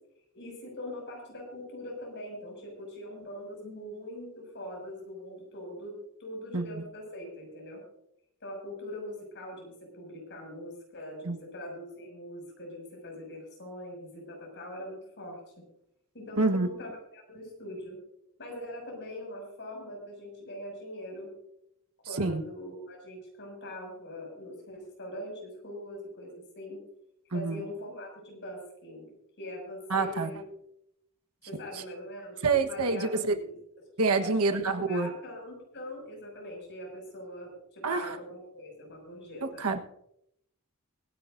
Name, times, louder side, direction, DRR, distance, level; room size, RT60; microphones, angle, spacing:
voice 1, 0.3-7.8 8.4-15.4 16.1-18.0 18.4-21.3 22.1-26.8 27.3-29.1 29.4-30.4 31.5-33.6 34.1-39.6, left 1 dB, 55° left, 0 dB, 6.7 m, -42 dB
voice 2, 6.5-6.8 11.2-11.4 16.4-16.7 22.2-22.4 27.3-27.6 29.9-30.3 31.7-31.8 32.4-33.4 34.0-35.1 37.8-38.2 39.4-39.8, right 3 dB, 80° right, 6 dB, 1.3 m, -27 dB
24.0 x 10.5 x 2.7 m, 0.76 s
head